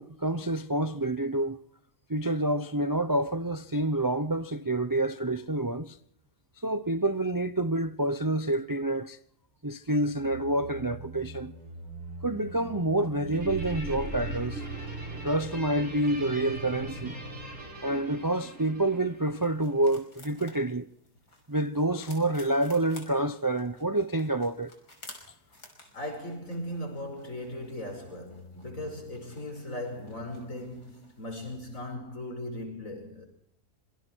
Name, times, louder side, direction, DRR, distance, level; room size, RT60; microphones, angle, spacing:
voice 1, 0.0-1.6 2.1-6.0 6.6-9.2 9.6-11.5 12.2-14.6 15.2-17.1 17.8-20.9 21.5-24.7, right 1 dB, 20° right, 0.6 m, -28 dB
sound 1, 10.0-18.8, right 2 dB, 75° right, 4.6 m, -41 dB
Guitar, 13.3-20.0, right 1 dB, 50° right, 5.7 m, -43 dB
sound 2, 19.1-31.9, left 2 dB, 90° left, 5.9 m, -54 dB
voice 2, 25.9-33.2, left 1 dB, 55° left, 6.2 m, -38 dB
26.5 x 24.5 x 4.6 m
omnidirectional pair, 1.7 m